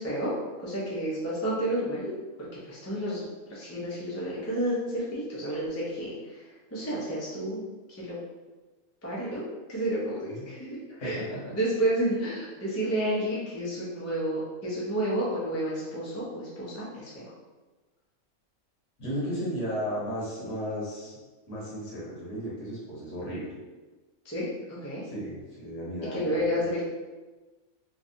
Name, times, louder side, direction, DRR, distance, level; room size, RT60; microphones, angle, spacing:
voice 1, 0.0-2.1 2.6-7.6 8.0-8.2 9.0-9.4 9.7-10.2 10.5-11.2 11.5-17.2 24.2-25.1 26.1-26.8, right 1 dB, 20° left, -7 dB, 0.5 m, -30 dB
voice 2, 10.9-11.5 19.0-21.2 21.5-23.6 25.0-26.6, equal, 60° left, -7 dB, 1.3 m, -35 dB
3.1 x 2.4 x 2.6 m, 1.2 s
omnidirectional pair, 1.4 m